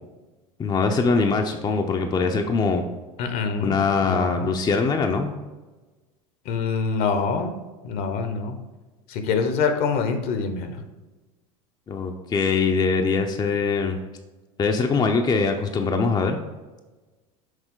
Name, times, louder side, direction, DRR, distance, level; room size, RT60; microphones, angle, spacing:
voice 1, 0.6-2.8 3.6-5.3 11.9-14.0 14.6-16.4, left 4 dB, 25° left, 4 dB, 0.6 m, -22 dB
voice 2, 3.2-4.5 6.5-7.5 7.8-8.6 9.1-10.8, left 5 dB, 60° left, 7 dB, 0.9 m, -25 dB
6.4 x 4.3 x 3.7 m, 1.2 s
hypercardioid pair, 85°, 18 cm